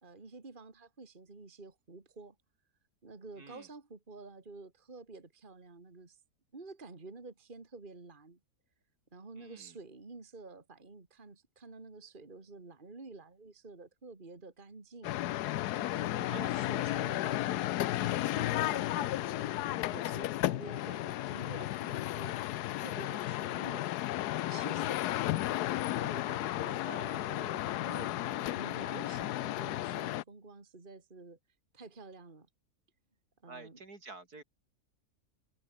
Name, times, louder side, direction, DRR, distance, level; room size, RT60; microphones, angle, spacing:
voice 1, 0.0-2.4 3.0-6.2 6.5-8.4 9.1-15.2 15.5-15.6 15.9-19.5 19.8-22.4 22.7-23.9 24.5-25.5 26.0-31.4 31.7-32.5 33.4-33.8, right 3 dB, 30° right, 2.4 m, -50 dB
voice 2, 3.4-3.7 9.4-9.8 16.2-16.6 26.8-27.4 33.5-34.4, right 3 dB, 70° right, 4.4 m, -49 dB
sound 1, 15.0-30.2, left 15 dB, 80° left, 1.1 m, -33 dB
omnidirectional pair, 1.7 m